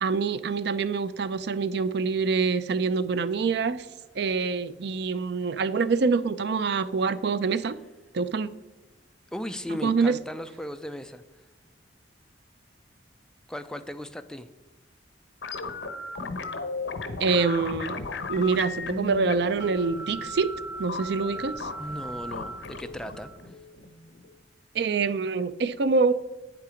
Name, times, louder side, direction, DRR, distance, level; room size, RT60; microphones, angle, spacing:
voice 1, 0.0-3.9 4.1-7.8 8.1-8.5 9.8-10.2 17.2-18.0 18.3-20.5 20.8-21.7 24.7-26.1, right 4 dB, 60° right, 14 dB, 0.4 m, -25 dB
voice 2, 9.3-11.2 13.5-14.5 21.8-23.6, left 1 dB, 5° left, 9 dB, 0.4 m, -37 dB
sound 1, 15.4-24.3, left 2 dB, 70° left, 0.9 m, -36 dB
sound 2, 18.0-23.2, equal, 45° right, 3.3 m, -48 dB
9.0 x 8.4 x 5.0 m, 1.1 s
head